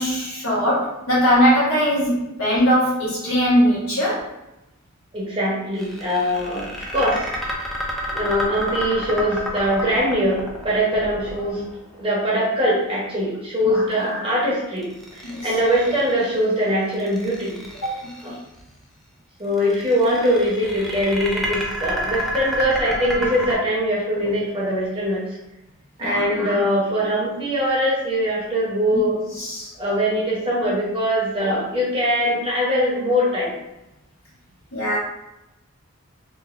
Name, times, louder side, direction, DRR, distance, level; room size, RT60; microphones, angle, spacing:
voice 1, 0.0-4.3 13.6-13.8 15.2-15.5 17.8-17.9 18.2-18.4 26.0-26.2 28.9-29.0 29.4-29.7 34.7-35.0, equal, 80° left, -8 dB, 1.4 m, -20 dB
voice 2, 5.1-7.3 8.1-11.6 12.0-17.5 18.2-18.3 19.4-25.4 26.0-29.4 29.8-33.6, equal, 25° right, -6 dB, 0.9 m, -22 dB
sound 1, 5.8-12.0 14.8-16.4 16.9-18.3 19.5-23.5, equal, ahead, 0.4 m, -30 dB
3.1 x 2.3 x 2.4 m, 0.93 s
head